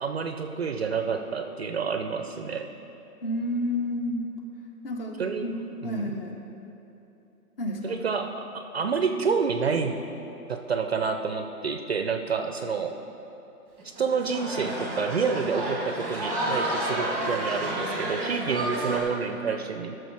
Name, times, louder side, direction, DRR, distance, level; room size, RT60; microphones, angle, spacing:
voice 1, 0.0-2.7 5.2-5.5 5.8-6.1 7.8-8.5 8.7-10.0 10.5-13.0 14.0-20.0, right 5 dB, 45° right, 6 dB, 0.5 m, -28 dB
voice 2, 3.2-4.3 4.8-5.6 5.8-6.4 7.6-8.0, left 1 dB, 40° left, 3 dB, 1.1 m, -30 dB
sound 1, 13.8-19.0, right 1 dB, ahead, 0.9 m, -30 dB
12.0 x 6.3 x 4.7 m, 2.9 s
hypercardioid pair, 145°, 46 cm